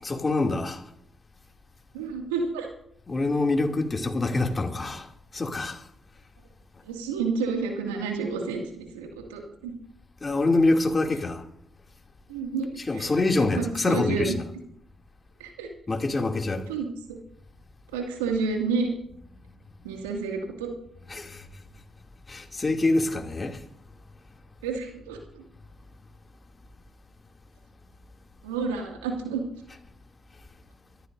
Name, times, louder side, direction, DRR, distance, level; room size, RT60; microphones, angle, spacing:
voice 1, 0.0-0.8 3.1-5.8 10.2-11.4 12.9-14.4 15.9-16.7 21.1-21.4 22.3-23.6, left 2 dB, 35° left, 2.8 m, -25 dB
voice 2, 1.9-2.7 6.8-9.7 12.3-14.3 15.4-15.7 16.7-16.9 17.9-18.9 19.8-20.7 24.6-25.4 28.4-29.4, right 4 dB, 90° right, 2.4 m, -30 dB
24.5 x 13.5 x 2.7 m
hypercardioid pair, 40°, 0 cm